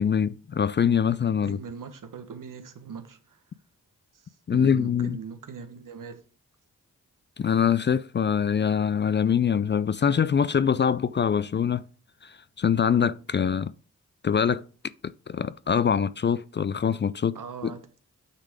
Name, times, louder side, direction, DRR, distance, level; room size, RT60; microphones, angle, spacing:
voice 1, 0.0-1.6 4.5-5.2 7.4-11.8 12.2-13.7 14.2-14.6 15.3-17.4 17.6-17.7, left 7 dB, 35° left, 0.4 m, -24 dB
voice 2, 1.4-3.4 4.2-6.2 17.3-18.0, right 6 dB, 65° right, 1.2 m, -40 dB
9.1 x 3.6 x 5.1 m
supercardioid pair, 45°, 34 cm